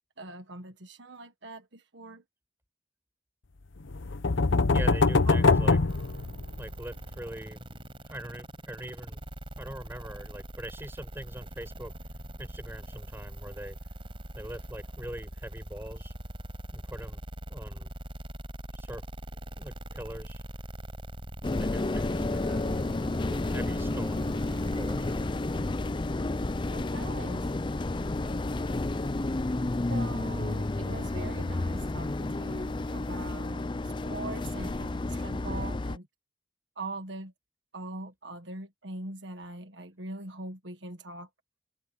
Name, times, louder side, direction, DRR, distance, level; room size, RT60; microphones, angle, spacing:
voice 1, 0.2-2.2 5.3-5.4 26.7-27.5 29.9-33.8 34.0-36.1 36.8-37.3 37.7-41.3, right 2 dB, 70° right, 1.6 m, -42 dB
sound 1, 3.9-6.8, left 3 dB, 90° left, 0.9 m, -23 dB
voice 2, 4.7-5.8 6.6-7.8 8.1-9.2 9.6-11.9 12.4-13.8 14.3-16.1 16.7-17.2 17.5-17.9 18.7-19.0 19.6-20.4 21.4-22.6 23.2-24.3 24.7-25.1, right 1 dB, 10° right, 7.7 m, -42 dB
sound 2, 5.9-25.2, right 1 dB, 30° right, 5.0 m, -42 dB
sound 3, 21.4-36.0, left 2 dB, 25° left, 0.5 m, -31 dB
head